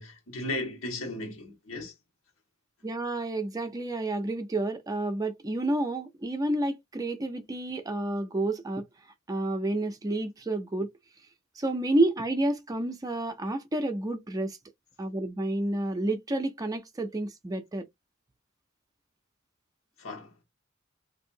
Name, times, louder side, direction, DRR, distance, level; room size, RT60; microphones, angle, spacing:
voice 1, 0.0-1.9 20.0-20.3, left 2 dB, 80° left, 1.2 m, -36 dB
voice 2, 2.8-10.9 11.6-14.6 15.0-17.9, right 2 dB, 15° right, 0.4 m, -30 dB
3.5 x 2.6 x 2.5 m
head